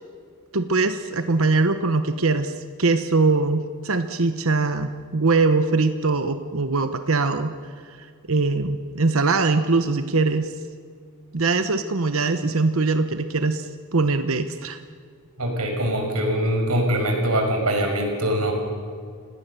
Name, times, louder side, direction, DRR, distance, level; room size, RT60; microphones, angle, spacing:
voice 1, 0.5-7.6 8.3-10.5 11.3-14.8, right 3 dB, 65° right, 9 dB, 1.0 m, -22 dB
voice 2, 15.4-18.5, right 1 dB, 85° right, 2 dB, 5.8 m, -23 dB
29.5 x 18.5 x 6.9 m, 2.1 s
head